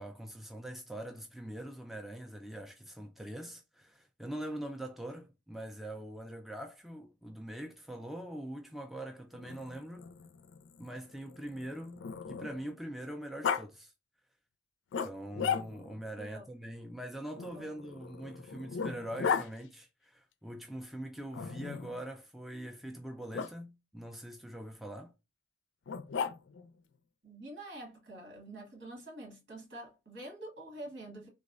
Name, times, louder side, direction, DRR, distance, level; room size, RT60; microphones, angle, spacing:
voice 1, 0.0-10.1 10.8-13.9 15.0-25.1, right 1 dB, ahead, 0.3 m, -43 dB
Growling, 9.3-12.7 13.4-13.6 14.9-16.0 17.4-19.5 21.3-22.0 23.3-23.5 25.9-26.7, left 6 dB, 75° left, 0.4 m, -36 dB
voice 2, 27.2-31.3, right 1 dB, 70° right, 1.5 m, -46 dB
3.3 x 2.1 x 2.4 m
head